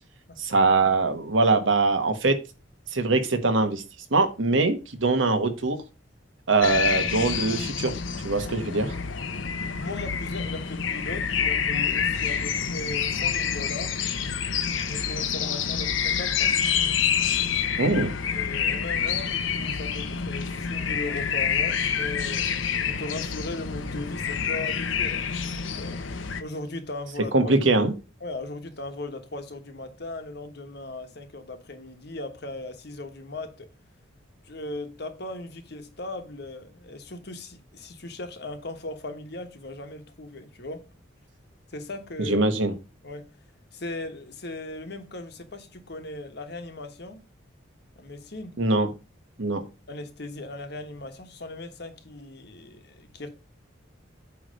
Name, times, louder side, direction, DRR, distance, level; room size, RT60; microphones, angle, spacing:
voice 1, 0.4-2.4 2.9-3.8 4.1-5.8 6.5-7.9 8.2-9.0 17.8-18.1 27.3-27.9 42.2-42.7 48.6-48.9 49.4-49.7, right 3 dB, 75° right, 1.3 m, -22 dB
sound 1, 6.6-26.4, left 7 dB, 75° left, 0.8 m, -27 dB
voice 2, 9.8-14.0 14.8-16.5 18.3-27.5 28.2-33.7 34.4-40.8 41.7-42.4 43.0-43.3 43.7-47.2 48.0-48.6 49.9-53.3, left 2 dB, 55° left, 1.2 m, -38 dB
8.6 x 3.3 x 6.4 m
head